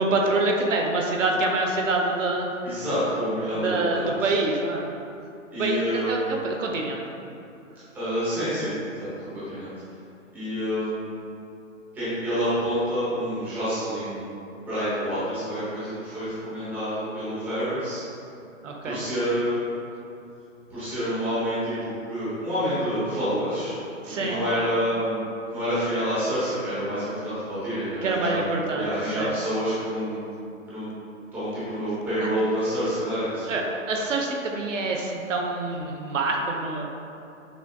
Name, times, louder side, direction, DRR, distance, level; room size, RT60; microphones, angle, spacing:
voice 1, 0.0-2.5 3.5-4.9 5.6-7.0 18.6-19.0 24.0-24.4 28.0-29.3 32.2-32.3 33.5-36.9, right 2 dB, 70° right, 1 dB, 0.7 m, -26 dB
voice 2, 2.6-4.4 5.5-6.3 7.9-9.7 10.3-11.1 11.9-14.3 14.7-18.0 18.8-19.6 20.7-23.7 24.2-28.4 28.7-30.4 30.7-30.9 31.3-33.6, equal, 5° right, -14 dB, 0.7 m, -28 dB
6.2 x 2.6 x 2.3 m, 2.7 s
hypercardioid pair, 150°, 40 cm